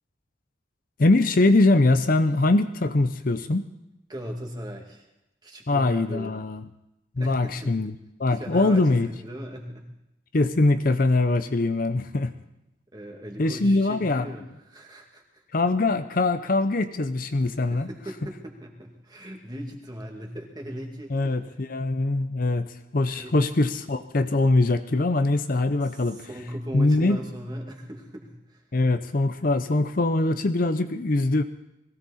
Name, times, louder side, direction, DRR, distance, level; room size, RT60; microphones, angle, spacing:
voice 1, 1.0-3.7 5.7-6.6 7.2-7.9 8.2-9.1 10.3-12.3 13.4-14.3 15.5-17.9 21.1-22.7 22.9-26.3 26.7-27.2 28.7-31.4, left 2 dB, 45° left, 9 dB, 0.7 m, -22 dB
voice 2, 4.1-5.1 5.4-6.3 7.2-7.7 8.3-9.9 12.9-15.4 17.7-21.3 23.2-23.4 25.8-28.6, equal, 20° right, 1 dB, 2.3 m, -38 dB
21.5 x 16.0 x 4.2 m, 0.89 s
head